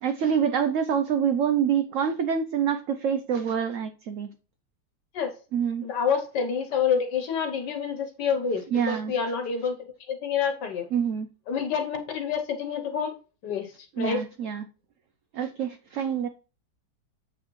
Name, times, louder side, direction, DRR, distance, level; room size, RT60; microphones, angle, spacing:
voice 1, 0.0-4.3 5.5-5.8 8.7-9.1 10.9-11.3 14.0-14.6 15.3-16.3, right 7 dB, 70° right, 0.8 m, -26 dB
voice 2, 5.8-9.7 10.1-10.8 11.5-13.1 13.4-14.2, left 6 dB, 75° left, 1.6 m, -28 dB
7.9 x 6.2 x 3.1 m
omnidirectional pair, 1.9 m